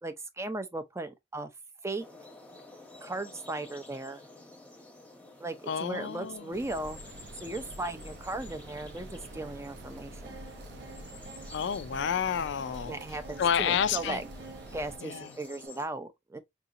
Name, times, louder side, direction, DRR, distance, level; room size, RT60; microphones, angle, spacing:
voice 1, 0.0-1.5 1.8-2.0 3.0-4.3 5.4-7.0 7.4-10.4 12.9-14.2 14.7-16.4, right 2 dB, 15° right, 0.5 m, -37 dB
sound 1, 2.0-15.8, left 2 dB, 10° left, 0.9 m, -51 dB
voice 2, 5.7-6.5 11.5-13.0 13.4-14.2 15.0-15.3, left 8 dB, 65° left, 0.3 m, -30 dB
sound 2, 6.5-15.0, right 1 dB, 60° right, 0.6 m, -47 dB
sound 3, 9.3-15.7, right 4 dB, 85° right, 1.1 m, -50 dB
4.7 x 2.7 x 2.5 m
head